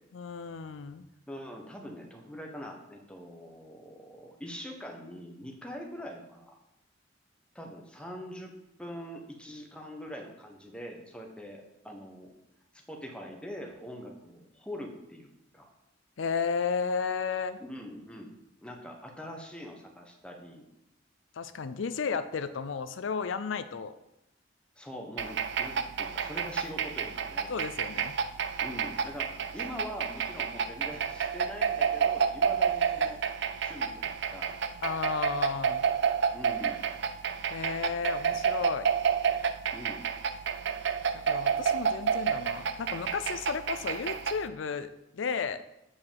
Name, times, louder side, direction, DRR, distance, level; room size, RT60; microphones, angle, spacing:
voice 1, 0.1-1.0 16.2-17.6 21.4-23.9 27.5-28.2 34.8-35.8 37.5-38.9 41.1-44.9 45.1-45.7, left 5 dB, 75° left, 11 dB, 0.5 m, -33 dB
voice 2, 1.3-6.6 7.5-12.3 12.7-15.7 17.6-18.3 18.6-20.7 24.8-27.5 28.6-33.2 33.6-34.5 36.3-36.8 39.7-40.0, equal, 5° left, 2 dB, 1.3 m, -43 dB
sound 1, 25.2-44.5, right 7 dB, 65° right, 0.5 m, -30 dB
8.3 x 4.9 x 7.3 m, 0.87 s
head